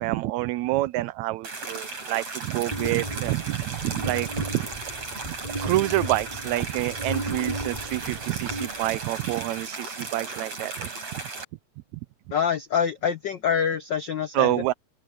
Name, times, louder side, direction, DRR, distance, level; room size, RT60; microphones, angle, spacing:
voice 1, 0.0-4.7 5.2-5.3 5.6-10.9 14.3-14.7, right 18 dB, 80° right, 1.9 m, -27 dB
sound 1, 1.4-11.4, right 3 dB, 55° right, 7.2 m, -36 dB
sound 2, 2.7-9.3, right 1 dB, 10° right, 6.6 m, -35 dB
voice 2, 12.3-14.6, left 7 dB, 80° left, 1.0 m, -25 dB
open air
omnidirectional pair, 3.4 m